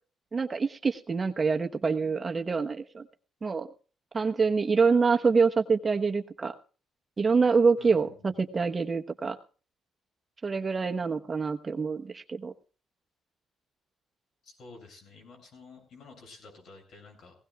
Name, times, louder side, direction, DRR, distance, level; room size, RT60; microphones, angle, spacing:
voice 1, 0.3-3.1 3.4-3.7 4.1-6.5 7.2-9.4 10.4-12.5, right 5 dB, 30° right, 5 dB, 1.1 m, -26 dB
voice 2, 7.8-8.3 14.4-17.3, left 4 dB, 65° left, 3 dB, 7.7 m, -51 dB
19.5 x 17.0 x 2.4 m, 0.38 s
cardioid pair, 90°, 0 cm